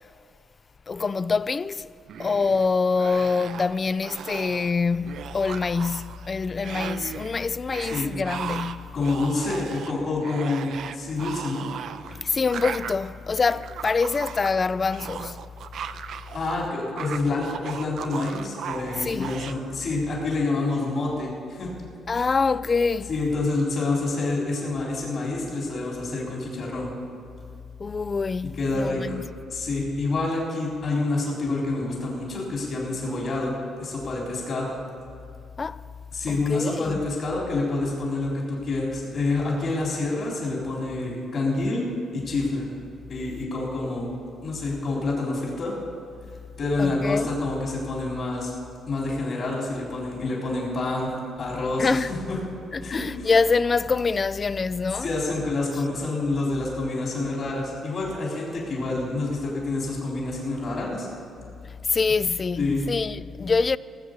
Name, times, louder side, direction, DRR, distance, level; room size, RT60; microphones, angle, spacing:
voice 1, 0.9-1.9 2.2-9.0 12.1-15.4 19.0-19.3 22.1-23.1 27.8-29.2 35.6-35.8 36.3-37.1 46.8-47.3 51.8-52.1 52.7-55.1 61.9-63.8, left 4 dB, 35° left, 0.3 m, -25 dB
sound 1, 2.1-2.7 3.0-3.7 4.0-4.7 5.0-6.3 6.6-7.3 7.7-16.5 16.8-19.5, right 8 dB, 70° right, 0.5 m, -37 dB
voice 2, 8.9-11.7 16.3-21.7 22.1-22.3 23.1-26.9 28.6-29.2 29.5-33.5 33.8-34.7 36.1-41.8 42.1-42.7 43.1-44.1 44.4-45.7 46.6-48.5 48.9-51.1 51.4-52.4 52.8-53.3 54.9-61.1 62.6-62.8, left 2 dB, 55° left, 3.8 m, -27 dB
17.0 x 8.1 x 6.7 m
cardioid pair, 90°, 0 cm